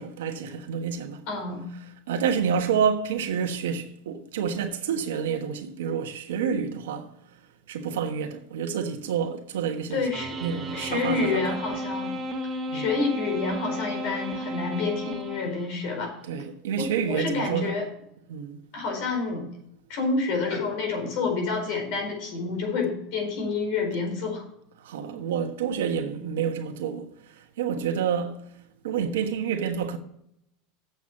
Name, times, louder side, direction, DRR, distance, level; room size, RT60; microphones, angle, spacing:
voice 1, 0.0-1.2 2.1-7.1 7.7-10.1 10.4-11.6 12.7-12.9 16.2-17.7 18.3-18.6 24.8-28.4 28.8-30.0, right 7 dB, 85° right, 1.3 m, -28 dB
voice 2, 1.3-1.7 9.9-10.3 10.7-12.2 12.7-16.1 16.8-17.9 18.7-19.5 19.9-24.4, left 4 dB, 60° left, 4.5 m, -28 dB
sound 1, 10.1-15.9, equal, 25° right, 1.7 m, -34 dB
8.1 x 7.1 x 7.1 m
supercardioid pair, 120°, 0 cm